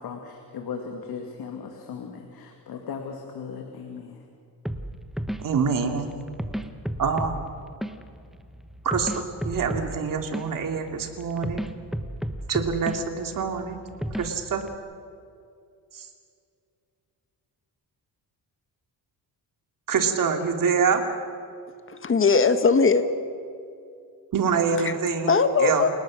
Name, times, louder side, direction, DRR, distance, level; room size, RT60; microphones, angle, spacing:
voice 1, 0.0-4.2, left 6 dB, 70° left, 3 dB, 2.3 m, -37 dB
sound 1, 4.6-14.7, equal, ahead, 1.1 m, -34 dB
voice 2, 5.4-6.1 7.0-7.3 8.8-11.6 12.5-13.8 14.2-14.6 15.9-16.1 19.9-21.0 24.3-25.3 25.6-25.9, right 6 dB, 55° right, 4 dB, 2.8 m, -25 dB
voice 3, 21.9-23.1 25.3-25.9, left 4 dB, 30° left, 10 dB, 1.5 m, -19 dB
29.0 x 18.5 x 6.4 m, 2.4 s
cardioid pair, 115°, 39 cm